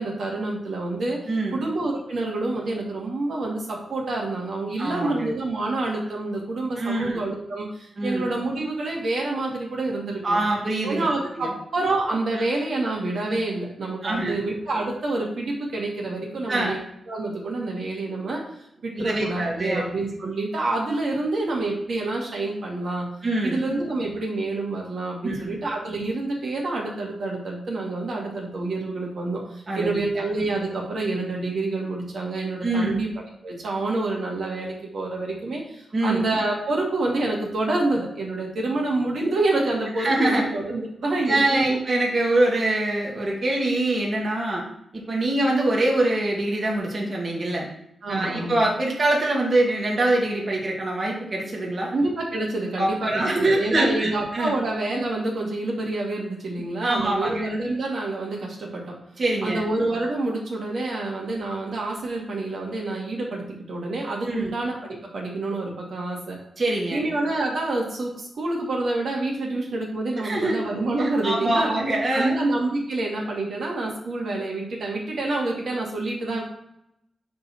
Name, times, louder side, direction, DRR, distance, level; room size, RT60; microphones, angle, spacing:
voice 1, 0.0-1.2 1.5-10.4 10.8-16.8 17.1-18.4 18.8-23.1 23.4-33.1 33.4-41.4 41.7-41.8 42.1-42.2 48.0-48.6 51.9-59.0 59.4-66.4 66.9-71.7 72.1-76.4, right 2 dB, 70° right, -2 dB, 2.2 m, -27 dB
voice 2, 1.3-1.6 4.8-5.3 6.8-7.2 8.0-8.3 10.2-11.1 11.4-11.5 14.0-14.4 16.5-16.8 19.0-19.8 23.2-23.6 25.2-25.6 29.7-30.1 32.6-33.0 35.9-36.2 40.0-40.5 41.3-44.6 44.9-47.7 48.1-51.9 52.8-54.5 56.8-57.5 59.2-59.6 64.3-64.5 66.6-67.0 70.2-70.6 71.0-72.4, right 1 dB, 40° right, -2 dB, 2.1 m, -24 dB
11.0 x 4.0 x 4.5 m, 0.78 s
wide cardioid pair, 100°, 0 cm